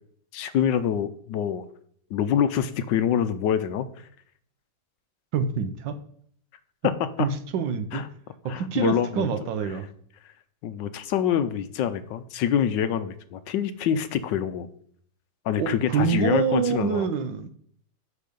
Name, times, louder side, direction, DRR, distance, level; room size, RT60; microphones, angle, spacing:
voice 1, 0.3-1.6 2.1-3.9 6.8-7.3 7.9-8.0 8.5-9.3 10.6-14.7 15.4-17.1, left 9 dB, 75° left, 1.3 m, -25 dB
voice 2, 5.3-6.0 7.2-8.0 8.4-9.9 15.6-17.5, right 7 dB, 75° right, 1.5 m, -26 dB
11.0 x 4.6 x 5.2 m
omnidirectional pair, 2.1 m